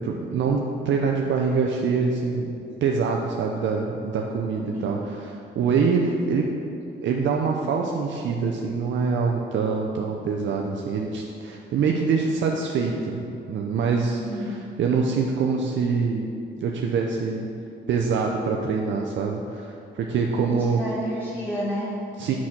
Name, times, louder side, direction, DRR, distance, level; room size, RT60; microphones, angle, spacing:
voice 1, 0.0-6.5 7.0-17.5 17.9-20.8 22.2-22.3, right 5 dB, 70° right, 0 dB, 0.7 m, -25 dB
voice 2, 20.3-22.0, equal, 10° left, -9 dB, 1.6 m, -31 dB
6.3 x 6.2 x 5.8 m, 2.6 s
cardioid pair, 90°, 20 cm